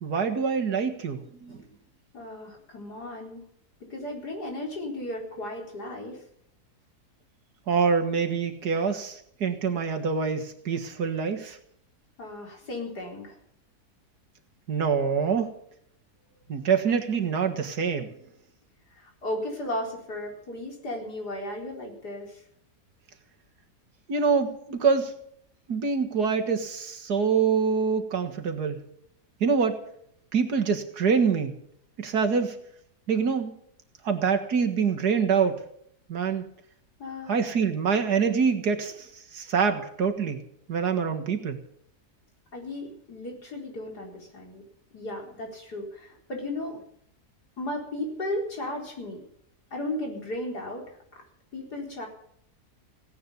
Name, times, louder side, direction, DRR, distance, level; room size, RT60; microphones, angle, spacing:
voice 1, 0.0-1.6 7.7-11.6 14.7-15.5 16.5-18.1 24.1-25.1 25.7-28.8 29.4-29.8 30.3-31.6 32.0-32.6 33.1-33.6 34.0-35.6 36.1-36.4 37.3-40.4 40.7-41.6, right 6 dB, 80° right, 5 dB, 2.3 m, -25 dB
voice 2, 2.1-3.4 3.9-6.2 8.7-8.8 12.2-13.4 18.9-22.4 37.0-37.4 42.5-44.6 44.9-46.8 47.6-49.2 49.7-51.0 51.5-52.1, left 1 dB, 80° left, 1 dB, 4.7 m, -35 dB
17.0 x 9.9 x 8.2 m, 0.68 s
omnidirectional pair, 1.7 m